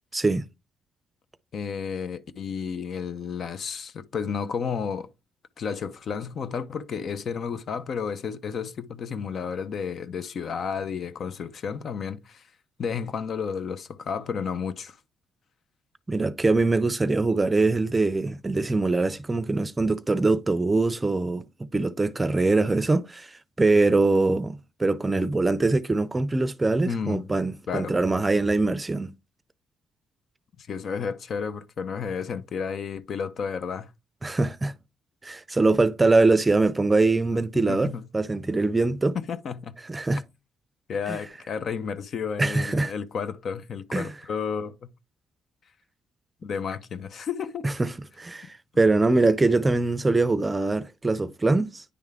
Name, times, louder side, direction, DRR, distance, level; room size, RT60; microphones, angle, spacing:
voice 1, 0.1-0.5 16.1-23.3 23.6-29.1 34.2-34.7 35.2-39.2 39.9-40.2 41.1-41.2 42.4-42.9 43.9-44.1 47.6-47.9 48.2-51.8, right 3 dB, 20° right, 0.5 m, -23 dB
voice 2, 1.5-5.1 5.6-12.4 12.8-15.0 26.9-27.3 27.7-27.9 30.6-33.9 37.3-38.1 39.1-39.8 40.9-44.9 46.4-47.6, left 6 dB, 55° left, 0.7 m, -32 dB
9.7 x 3.5 x 3.4 m
cardioid pair, 90°, 0 cm